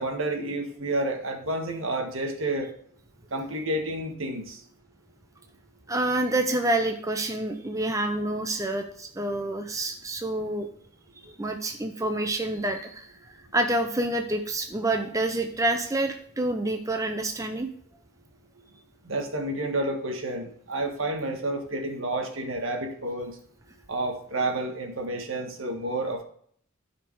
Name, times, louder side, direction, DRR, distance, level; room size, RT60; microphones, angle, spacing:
voice 1, 0.0-2.7 3.3-4.6 19.0-23.3 23.9-26.2, right 1 dB, 70° right, 4 dB, 1.7 m, -30 dB
voice 2, 5.9-10.7 11.2-17.7, right 2 dB, 15° right, 5 dB, 0.6 m, -28 dB
12.5 x 5.1 x 4.7 m, 0.62 s
head